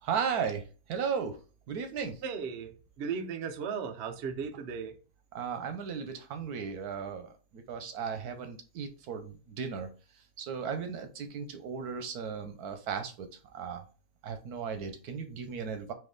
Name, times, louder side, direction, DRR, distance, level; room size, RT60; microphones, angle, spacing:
voice 1, 0.0-1.4 1.7-2.2 5.3-9.9 10.4-13.3 13.5-13.8 14.2-15.9, right 6 dB, 85° right, 1.3 m, -36 dB
voice 2, 2.2-5.0, right 6 dB, 60° right, 0.7 m, -36 dB
4.5 x 2.6 x 3.8 m
omnidirectional pair, 1.6 m